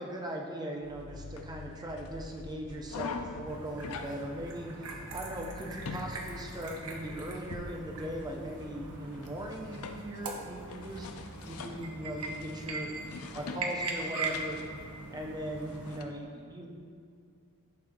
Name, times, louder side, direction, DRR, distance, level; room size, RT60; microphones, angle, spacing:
voice 1, 0.0-12.9 13.3-14.6 15.1-16.7, right 1 dB, 20° right, 0 dB, 0.6 m, -39 dB
sound 1, 0.8-16.0, left 4 dB, 70° left, 0.5 m, -45 dB
sound 2, 3.5-16.0, right 3 dB, 70° right, 0.7 m, -41 dB
10.5 x 4.2 x 2.6 m, 2.3 s
head